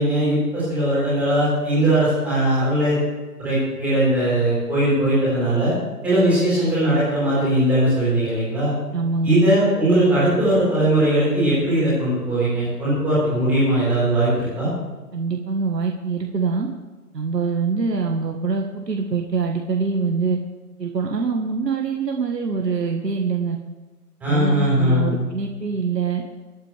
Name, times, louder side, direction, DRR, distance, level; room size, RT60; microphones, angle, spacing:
voice 1, 0.0-3.0 3.4-5.7 6.0-8.7 9.2-14.7 24.2-25.2, right 1 dB, 5° right, -11 dB, 4.6 m, -19 dB
voice 2, 8.9-9.4 15.1-16.7 17.1-20.4 20.8-23.6 24.3-26.2, right 5 dB, 85° right, 2 dB, 1.7 m, -24 dB
26.0 x 8.9 x 3.5 m, 1.2 s
hypercardioid pair, 170°, 48 cm